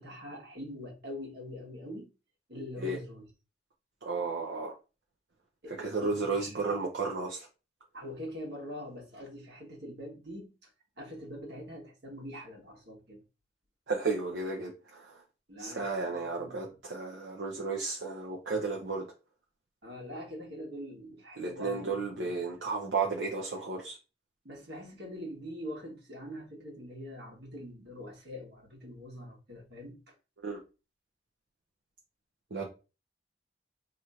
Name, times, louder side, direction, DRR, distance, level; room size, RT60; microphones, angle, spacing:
voice 1, 0.0-2.1 2.5-3.2 5.6-6.8 7.9-10.7 11.0-13.2 15.5-16.8 19.8-22.7 24.4-30.1, equal, 65° right, 1.4 m, -43 dB
voice 2, 4.0-4.7 5.7-7.5 13.9-15.2 15.6-19.1 21.4-24.0 30.4-30.6 32.5-32.6, right 4 dB, 80° right, 0.6 m, -33 dB
2.9 x 2.5 x 4.1 m
head